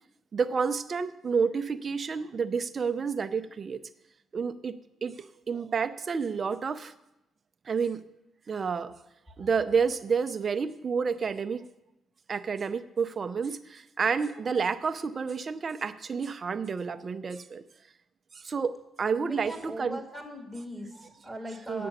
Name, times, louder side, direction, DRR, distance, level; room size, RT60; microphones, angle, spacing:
voice 1, 0.3-3.8 4.3-4.8 5.0-5.1 5.5-6.9 7.7-8.0 8.5-8.9 9.4-11.6 12.3-17.6 18.4-20.0 21.7-21.9, right 5 dB, 40° right, 11 dB, 0.6 m, -29 dB
voice 2, 19.2-21.9, equal, 5° left, 1 dB, 1.8 m, -40 dB
8.5 x 6.9 x 7.9 m, 0.90 s
cardioid pair, 90°, 0 cm